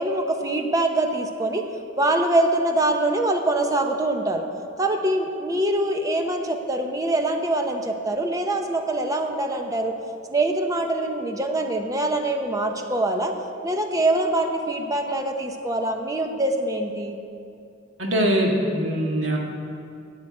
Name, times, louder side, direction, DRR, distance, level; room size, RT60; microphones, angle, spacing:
voice 1, 0.0-1.6 2.0-4.4 4.8-9.9 10.3-13.3 13.6-17.2, right 1 dB, 15° right, 4 dB, 0.8 m, -24 dB
voice 2, 18.0-19.4, equal, 75° right, 0 dB, 1.8 m, -22 dB
9.1 x 7.6 x 8.7 m, 2.6 s
head